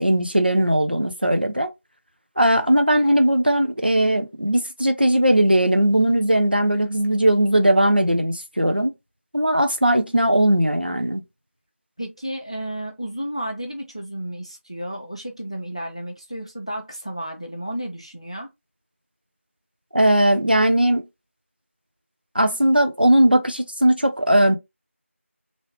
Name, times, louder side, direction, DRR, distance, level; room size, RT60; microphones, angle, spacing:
voice 1, 0.0-1.7 2.4-8.9 9.3-11.2 19.9-21.0 22.3-24.6, right 1 dB, 45° right, 0.6 m, -18 dB
voice 2, 12.0-18.5, right 1 dB, 25° left, 0.6 m, -32 dB
3.3 x 2.7 x 2.9 m
figure-of-eight pair, 175°, 7 cm